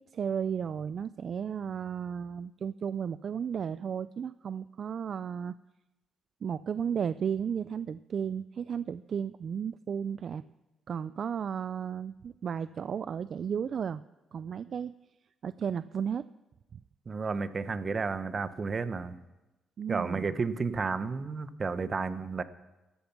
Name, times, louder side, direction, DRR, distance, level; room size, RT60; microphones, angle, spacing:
voice 1, 0.0-5.5 6.4-10.4 10.9-14.0 14.3-14.9 15.4-16.2 19.8-20.3, right 7 dB, 55° right, 15 dB, 0.4 m, -34 dB
voice 2, 17.1-19.1 19.9-22.4, right 4 dB, 35° right, 13 dB, 1.0 m, -32 dB
14.0 x 13.0 x 5.9 m, 1.0 s
cardioid pair, 90°, 0 cm